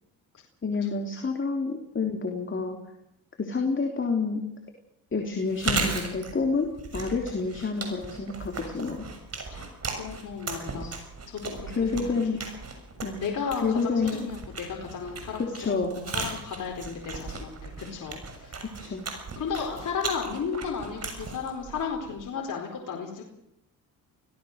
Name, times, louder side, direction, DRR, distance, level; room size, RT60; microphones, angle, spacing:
voice 1, 0.6-2.8 3.4-4.5 5.1-6.7 6.9-9.1 10.8-10.9 11.7-12.4 13.0-13.2 13.6-14.3 15.5-16.0 18.8-19.1, left 4 dB, 30° left, 3 dB, 3.5 m, -28 dB
Chewing mastication, 5.4-22.3, right 4 dB, 40° right, 6.9 m, -37 dB
voice 2, 10.0-10.9 11.3-12.1 12.3-12.4 13.2-18.6 19.4-23.2, left 6 dB, 55° left, 0 dB, 4.4 m, -34 dB
25.0 x 17.5 x 6.7 m, 0.82 s
supercardioid pair, 75°, 38 cm